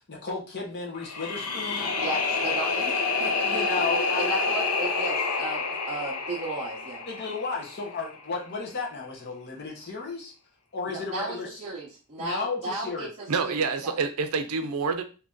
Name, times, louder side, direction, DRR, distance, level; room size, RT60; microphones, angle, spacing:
voice 1, 0.0-1.9 3.4-4.5 7.1-10.3 10.7-11.6 12.2-13.1, left 4 dB, 50° left, -1 dB, 1.0 m, -34 dB
sound 1, 1.0-8.1, left 4 dB, 85° left, 0.7 m, -28 dB
voice 2, 2.0-3.6 4.2-7.0 10.9-14.0, right 2 dB, 35° right, -5 dB, 0.7 m, -35 dB
voice 3, 13.3-15.0, right 4 dB, 80° right, 8 dB, 0.5 m, -27 dB
2.9 x 2.6 x 3.6 m, 0.35 s
head